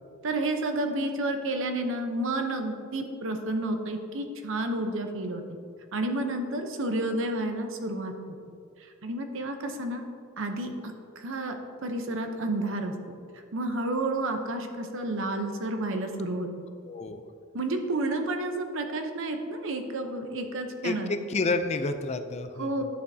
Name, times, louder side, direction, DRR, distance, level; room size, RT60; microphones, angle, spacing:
voice 1, 0.2-5.4 5.9-8.1 9.0-10.0 10.4-11.6 11.8-13.1 13.5-16.5 17.5-21.1 22.6-22.8, right 2 dB, 65° right, 5 dB, 0.8 m, -30 dB
voice 2, 16.8-17.2 20.8-22.8, left 3 dB, 30° left, 8 dB, 0.4 m, -30 dB
11.0 x 6.8 x 2.7 m, 2.4 s
head